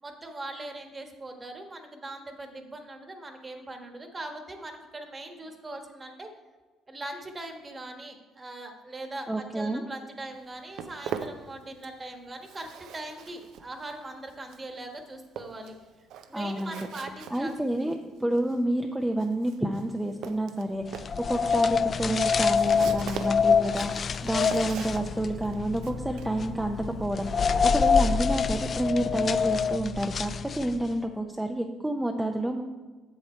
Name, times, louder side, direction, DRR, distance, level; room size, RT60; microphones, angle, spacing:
voice 1, 0.0-6.3 6.9-15.8 16.3-17.5 17.8-17.9 27.5-27.8, right 2 dB, 25° right, 5 dB, 1.4 m, -41 dB
voice 2, 9.3-9.9 16.3-16.9 17.3-17.9 18.2-32.6, right 1 dB, 5° right, 3 dB, 0.7 m, -29 dB
Walk footsteps, 10.3-12.1 12.3-27.7, right 8 dB, 70° right, 0.6 m, -42 dB
sound 1, 20.9-30.9, left 6 dB, 40° left, 0.3 m, -26 dB
7.9 x 7.1 x 4.4 m, 1.3 s
cardioid pair, 90°, 0 cm